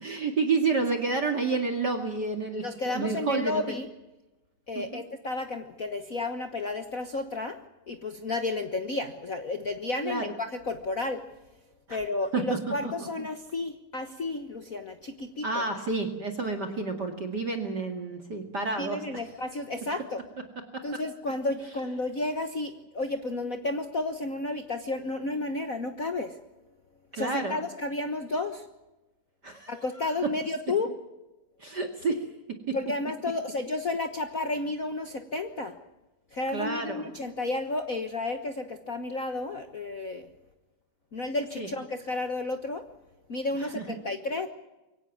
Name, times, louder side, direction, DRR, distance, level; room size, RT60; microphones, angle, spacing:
voice 1, 0.0-3.6 4.9-5.0 10.0-10.3 11.9-12.0 12.3-13.1 15.4-19.2 27.1-27.6 29.4-29.7 31.6-32.2 32.7-32.8 36.5-37.1 41.6-41.7 43.6-44.0, right 4 dB, 35° right, 5 dB, 2.4 m, -30 dB
voice 2, 2.6-3.9 4.7-7.6 7.9-11.3 11.9-15.6 18.8-20.2 20.8-26.4 27.1-28.7 29.7-30.9 32.7-35.8 36.3-40.3 41.1-42.9 43.3-44.5, left 2 dB, 55° left, 7 dB, 0.9 m, -32 dB
24.0 x 17.0 x 9.3 m, 1.0 s
omnidirectional pair, 3.4 m